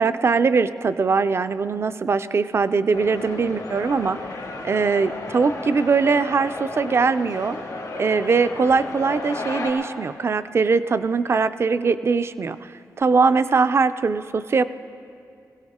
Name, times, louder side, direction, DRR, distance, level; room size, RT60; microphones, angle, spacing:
voice 1, 0.0-4.2 4.6-7.6 8.0-12.7 13.0-14.6, right 4 dB, 40° right, 13 dB, 0.4 m, -21 dB
sound 1, 2.9-9.7, left 2 dB, 80° left, 3.1 m, -33 dB
20.0 x 16.0 x 3.6 m, 2.5 s
wide cardioid pair, 120°, 6 cm